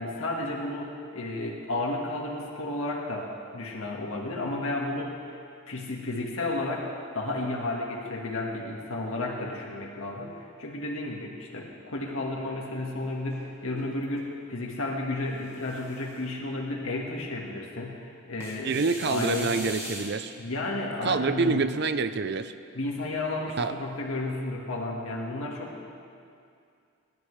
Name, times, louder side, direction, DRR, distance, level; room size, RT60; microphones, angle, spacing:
voice 1, 0.0-5.1 5.7-6.9 7.1-10.3 10.6-19.6 20.4-21.6 22.7-25.8, left 2 dB, 75° left, -2 dB, 1.7 m, -32 dB
sound 1, 13.3-14.2 15.2-16.3 18.4-20.4, right 1 dB, 15° right, 1.7 m, -41 dB
voice 2, 18.6-20.3 21.0-22.5 23.6-23.7, right 4 dB, 50° right, 11 dB, 0.5 m, -27 dB
27.0 x 12.0 x 3.3 m, 2.4 s
head